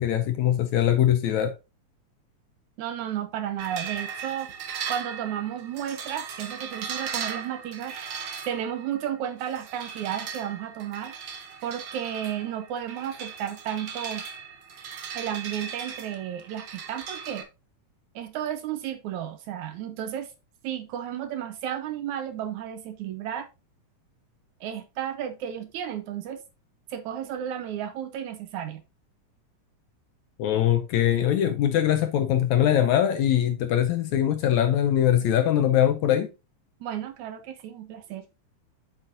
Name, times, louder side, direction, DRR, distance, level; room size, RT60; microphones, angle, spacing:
voice 1, 0.0-1.5 30.4-36.3, left 11 dB, 75° left, 1.8 m, -22 dB
voice 2, 2.8-4.5 4.9-8.0 8.5-11.1 11.6-14.2 15.1-17.5 18.2-20.3 20.6-23.5 24.6-26.4 26.9-28.8 36.8-38.3, right 10 dB, 70° right, 2.0 m, -33 dB
sound 1, 3.6-17.4, right 6 dB, 55° right, 1.6 m, -38 dB
8.0 x 7.6 x 2.6 m
omnidirectional pair, 3.9 m